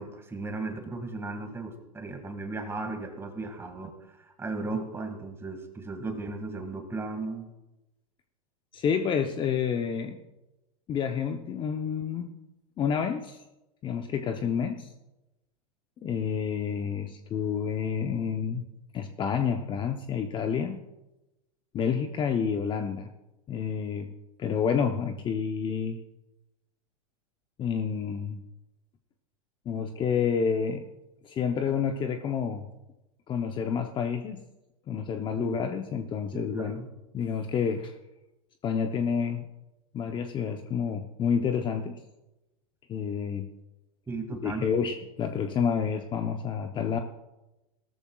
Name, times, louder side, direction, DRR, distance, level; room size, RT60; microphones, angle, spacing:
voice 1, 0.0-7.5 35.4-35.7 36.3-36.9 44.1-44.7, right 3 dB, 15° right, 5 dB, 2.0 m, -36 dB
voice 2, 8.7-10.2 10.9-12.3 12.8-13.4 13.8-14.9 16.0-18.7 18.9-20.8 21.7-23.1 23.5-24.1 24.4-26.0 27.6-28.4 29.7-30.8 31.2-32.7 33.3-34.4 34.9-36.8 37.1-37.9 38.6-39.5 39.9-42.0 42.9-43.5 44.3-47.0, left 7 dB, 25° left, 5 dB, 0.8 m, -29 dB
18.0 x 13.5 x 2.4 m, 0.98 s
hypercardioid pair, 120°, 19 cm